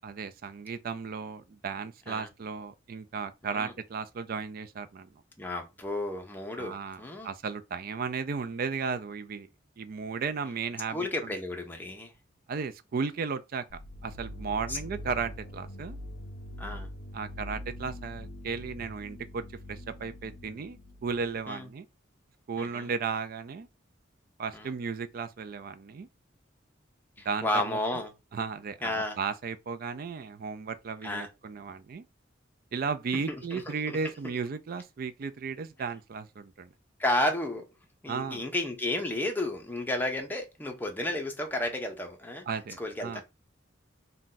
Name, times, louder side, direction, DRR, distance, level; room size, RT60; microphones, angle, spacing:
voice 1, 0.0-5.1 6.6-9.5 9.8-11.3 12.5-16.0 17.1-19.4 19.7-21.9 22.5-23.7 24.4-26.1 27.2-27.8 28.3-32.1 32.7-36.7 38.1-38.4 42.5-43.2, right 5 dB, 50° right, 0.3 m, -35 dB
voice 2, 5.4-7.3 10.9-12.1 14.7-14.8 16.6-16.9 21.5-21.7 22.6-22.9 24.5-24.7 27.2-28.1 28.8-29.2 31.0-31.3 33.1-34.0 37.0-37.7 38.0-42.5 42.8-43.2, left 1 dB, 10° left, 0.6 m, -32 dB
sound 1, 13.7-21.4, left 1 dB, 60° left, 0.4 m, -43 dB
2.6 x 2.2 x 3.8 m
head